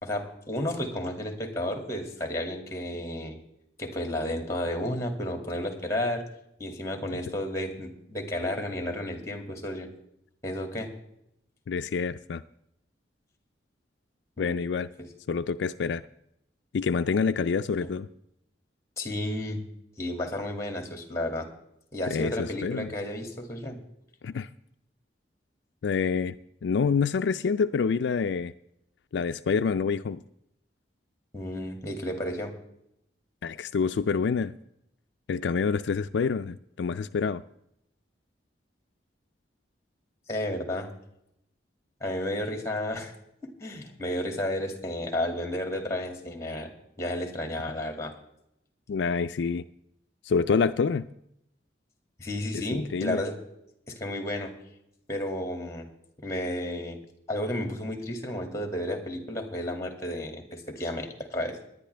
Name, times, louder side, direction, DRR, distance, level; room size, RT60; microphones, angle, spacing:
voice 1, 0.0-3.4 3.8-6.2 6.6-9.9 10.4-10.9 14.4-14.6 15.0-15.1 17.8-17.9 19.0-19.6 20.0-21.5 21.9-23.8 31.3-32.5 40.3-40.9 42.0-43.1 43.4-48.1 52.2-53.3 53.9-54.5 55.1-55.9 56.2-57.0 57.3-61.6, left 1 dB, 15° left, 4 dB, 2.1 m, -32 dB
voice 2, 11.7-12.4 14.4-14.9 15.3-16.0 16.7-18.1 22.1-22.9 24.2-24.5 25.8-26.3 26.6-28.5 29.1-30.2 33.4-34.5 35.3-37.4 48.9-49.6 50.2-51.1 52.5-53.2, left 5 dB, 70° left, 10 dB, 0.4 m, -27 dB
18.5 x 11.0 x 3.3 m, 0.78 s
head